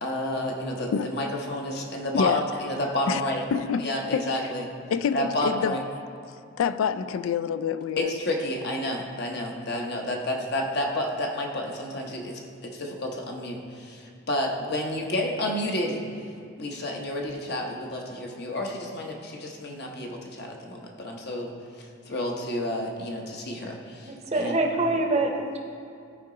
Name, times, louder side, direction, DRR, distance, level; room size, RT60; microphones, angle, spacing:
voice 1, 0.0-3.4 3.8-4.6 5.1-5.8 8.0-16.0 16.6-21.5 22.1-24.6, left 1 dB, 55° left, 0.8 m, -30 dB
voice 2, 3.5-4.4 4.9-5.8 6.6-8.1, left 7 dB, 90° left, 0.3 m, -26 dB
voice 3, 24.0-25.6, right 2 dB, 35° right, 0.7 m, -25 dB
13.5 x 4.7 x 3.8 m
head